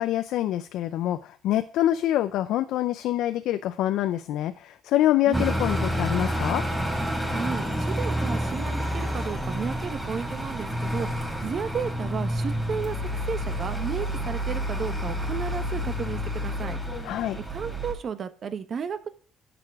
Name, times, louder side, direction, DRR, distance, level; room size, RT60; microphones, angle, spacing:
voice 1, 0.0-6.7 17.0-17.4, left 13 dB, 80° left, 11 dB, 0.5 m, -25 dB
sound 1, 5.3-17.9, equal, ahead, 3.7 m, -29 dB
voice 2, 7.3-16.8 17.5-19.1, right 6 dB, 45° right, 12 dB, 1.0 m, -33 dB
10.5 x 6.9 x 3.6 m, 0.43 s
cardioid pair, 120°, 0 cm